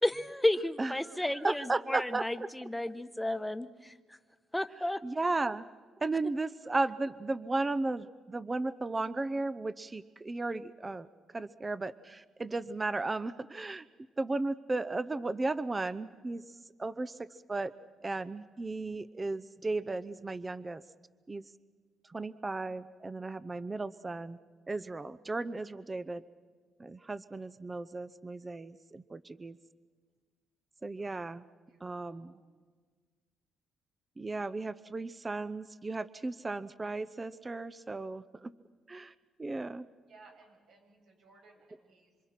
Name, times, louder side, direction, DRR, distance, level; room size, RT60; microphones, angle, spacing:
voice 1, 0.0-3.9 4.5-5.0, left 1 dB, 5° left, 11 dB, 1.2 m, -32 dB
voice 2, 0.8-2.5 5.0-5.6 6.0-11.1 11.3-13.8 14.2-16.4 16.8-17.7 18.0-20.8 21.3-21.4 22.1-24.4 24.7-26.2 26.8-29.6 30.8-31.5 31.8-32.3 34.2-38.5 38.9-39.1 39.4-39.8, right 3 dB, 25° right, 15 dB, 0.7 m, -35 dB
voice 3, 31.0-31.3 31.7-32.3 40.1-42.3, right 3 dB, 70° right, 1 dB, 7.8 m, -60 dB
27.0 x 26.0 x 5.9 m, 1.5 s
cardioid pair, 90°, 0 cm